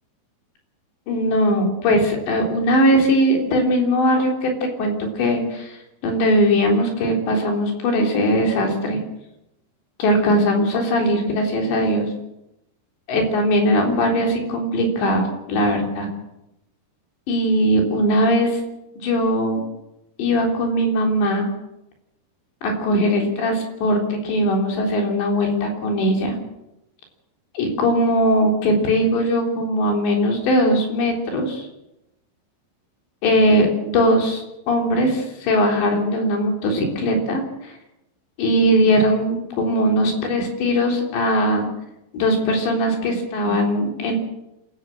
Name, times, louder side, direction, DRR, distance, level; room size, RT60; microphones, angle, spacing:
voice 1, 1.1-5.8 6.0-9.0 10.0-12.1 13.1-15.2 15.5-16.1 17.3-18.6 19.0-19.6 20.2-21.5 22.6-26.3 27.6-31.7 33.2-37.4 38.4-41.7 42.1-44.1, equal, 80° left, 2 dB, 5.9 m, -20 dB
27.5 x 13.5 x 7.6 m, 0.89 s
omnidirectional pair, 5.0 m